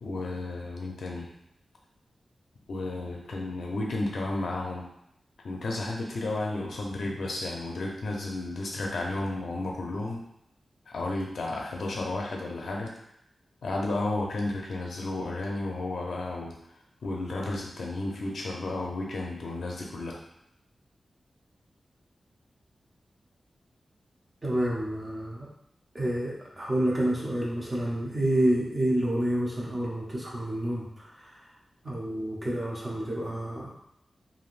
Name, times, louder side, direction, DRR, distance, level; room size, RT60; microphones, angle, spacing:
voice 1, 0.0-1.3 2.7-4.8 5.4-10.2 10.9-12.9 13.6-16.5 17.0-20.2, left 2 dB, 85° left, -1 dB, 0.6 m, -32 dB
voice 2, 24.4-25.5 25.9-31.4 31.8-33.7, right 1 dB, 20° right, -5 dB, 0.7 m, -29 dB
3.4 x 2.6 x 2.5 m, 0.77 s
wide cardioid pair, 165°, 0 cm